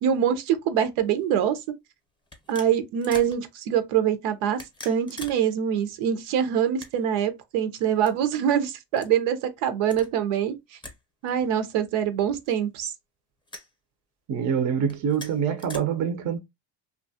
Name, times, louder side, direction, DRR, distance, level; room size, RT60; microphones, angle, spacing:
voice 1, 0.0-1.6 2.5-10.6 11.2-12.9, right 9 dB, 85° right, 0.7 m, -24 dB
sound 1, 1.2-1.4 2.3-3.4 4.4-5.4 5.7-5.8 6.6-7.2 8.0-8.1 9.0-9.1 9.8-10.1 10.8-11.0 11.3-11.4 12.3-12.9 13.5-13.7 14.8-15.8, left 2 dB, 10° left, 0.6 m, -43 dB
voice 2, 14.3-16.4, right 7 dB, 40° right, 0.5 m, -25 dB
2.7 x 2.3 x 2.6 m
cardioid pair, 115°, 48 cm